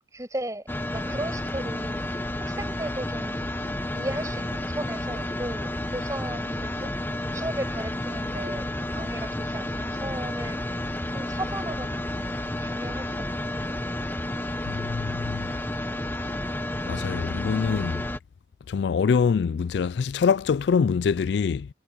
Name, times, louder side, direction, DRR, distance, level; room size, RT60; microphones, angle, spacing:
voice 1, 0.1-2.0 2.4-3.5 3.9-6.9 7.3-10.6 11.1-13.3 13.5-13.6, right 1 dB, 20° right, 6.6 m, -36 dB
sound 1, 0.7-18.2, left 1 dB, 10° left, 1.0 m, -31 dB
voice 2, 14.7-15.5 16.9-18.0 18.7-21.7, left 6 dB, 75° left, 0.4 m, -24 dB
head